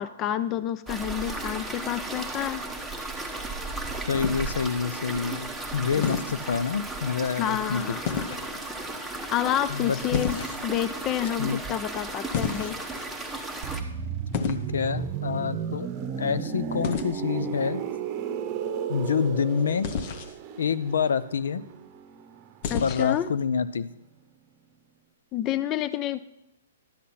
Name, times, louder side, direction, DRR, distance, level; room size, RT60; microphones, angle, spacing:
voice 1, 0.0-2.6 5.9-6.2 7.4-8.3 9.3-12.8 22.7-23.3 25.3-26.2, left 11 dB, 25° left, 14 dB, 0.4 m, -29 dB
sound 1, 0.9-13.8, right 2 dB, ahead, 0.9 m, -35 dB
voice 2, 4.1-7.8 9.7-10.2 11.4-11.6 14.4-15.9 16.2-17.8 18.9-19.9 20.6-21.6 22.8-23.9, left 6 dB, 80° left, 15 dB, 0.6 m, -27 dB
sound 2, 4.1-4.8 6.0-6.4 8.0-8.5 10.1-10.8 12.3-13.0 14.3-14.7 16.8-17.1 19.8-20.3 22.6-23.2, left 6 dB, 40° left, 0.8 m, -31 dB
sound 3, 13.6-23.3 23.5-23.8, right 7 dB, 30° right, 0.9 m, -34 dB
11.5 x 8.3 x 4.2 m, 0.80 s
hypercardioid pair, 150°, 0 cm